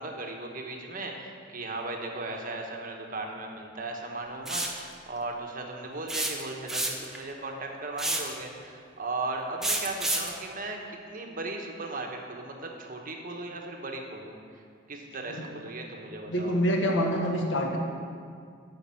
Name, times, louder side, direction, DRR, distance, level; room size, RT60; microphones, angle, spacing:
voice 1, 0.0-14.6 14.9-16.6, right 2 dB, 45° right, 2 dB, 1.3 m, -37 dB
sound 1, 4.5-4.8 6.1-7.2 8.0-8.3 9.6-10.3, right 1 dB, ahead, 0.9 m, -29 dB
voice 2, 16.3-17.8, equal, 75° left, 1 dB, 1.5 m, -26 dB
10.0 x 6.6 x 7.7 m, 2.2 s
head